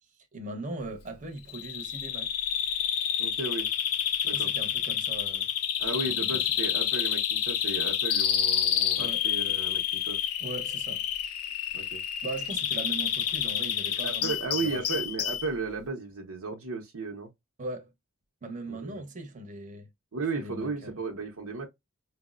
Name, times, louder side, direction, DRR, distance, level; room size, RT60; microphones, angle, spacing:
voice 1, 0.3-2.3 4.3-5.5 6.0-6.4 9.0-9.3 10.4-11.0 12.2-15.0 17.6-17.9 18.4-19.9 20.3-21.0, right 2 dB, 35° right, 0.8 m, -39 dB
Bird vocalization bird call bird song, 1.5-15.5, left 9 dB, 75° left, 0.4 m, -29 dB
voice 2, 3.2-3.7 4.2-4.5 5.8-10.2 11.7-12.0 13.9-17.3 18.7-19.0 20.1-21.7, right 3 dB, 85° right, 0.7 m, -35 dB
4.5 x 2.0 x 2.3 m
head